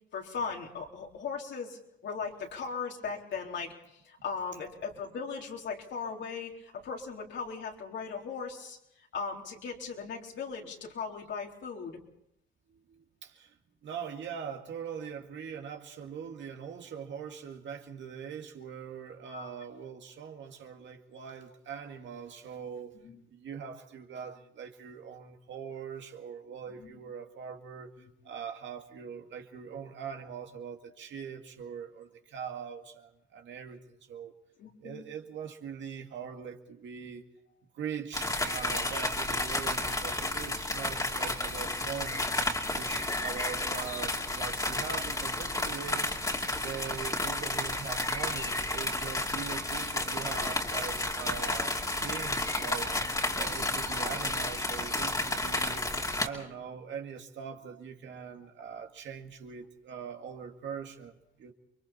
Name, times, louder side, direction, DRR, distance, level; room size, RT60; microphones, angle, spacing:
voice 1, 0.1-3.7 4.0-8.8 9.1-12.0 19.3-19.5 23.0-23.2 26.7-27.0 34.6-35.0, left 5 dB, 65° left, 4.0 m, -38 dB
voice 2, 12.7-13.5 13.8-22.9 23.3-27.9 28.2-33.8 34.1-34.3 34.8-37.2 37.7-55.8 56.2-61.5, right 7 dB, 65° right, 2.1 m, -42 dB
sound 1, 38.1-56.3, left 2 dB, 15° left, 2.7 m, -32 dB
29.5 x 22.5 x 4.3 m
cardioid pair, 90°, 20 cm